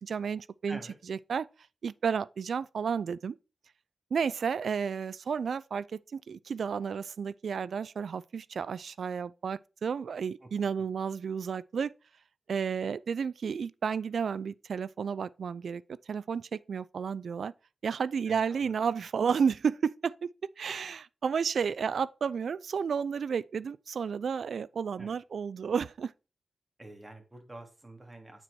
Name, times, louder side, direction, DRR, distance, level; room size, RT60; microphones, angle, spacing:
voice 1, 0.0-0.8 1.1-1.5 1.8-3.4 4.1-11.9 12.5-15.8 16.1-17.5 17.8-20.3 20.6-26.1, right 6 dB, 80° right, 0.4 m, -32 dB
voice 2, 18.3-18.7 25.0-25.2 26.8-28.4, right 1 dB, 25° right, 2.7 m, -47 dB
8.8 x 4.6 x 4.3 m
cardioid pair, 75°, 0 cm